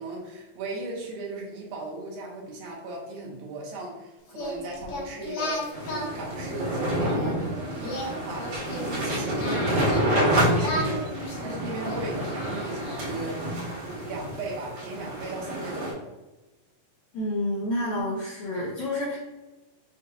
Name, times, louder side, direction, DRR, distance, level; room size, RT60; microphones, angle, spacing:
voice 1, 0.0-13.5 13.8-16.0, right 2 dB, 85° right, -2 dB, 2.7 m, -37 dB
Singing, 4.3-7.3 7.8-10.2 10.6-13.2, left 1 dB, 90° left, 1.2 m, -35 dB
sound 1, 5.7-15.9, equal, 65° right, 2.6 m, -28 dB
voice 2, 17.1-19.2, left 1 dB, 75° left, -6 dB, 1.7 m, -29 dB
6.3 x 2.5 x 2.7 m, 1.1 s
omnidirectional pair, 4.2 m